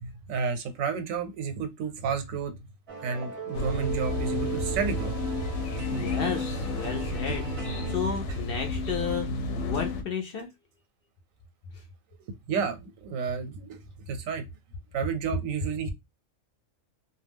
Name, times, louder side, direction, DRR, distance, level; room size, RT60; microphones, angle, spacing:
voice 1, 0.0-2.5 3.0-5.1 7.3-7.4 12.2-13.8 14.1-14.4 14.9-15.9, right 6 dB, 90° right, 1.0 m, -31 dB
sound 1, 2.9-8.0, right 6 dB, 40° right, 0.5 m, -37 dB
sound 2, 3.5-10.0, left 2 dB, 85° left, 1.0 m, -31 dB
voice 2, 5.9-10.5 11.7-11.8, left 6 dB, 60° left, 0.6 m, -33 dB
2.3 x 2.2 x 3.4 m
omnidirectional pair, 1.4 m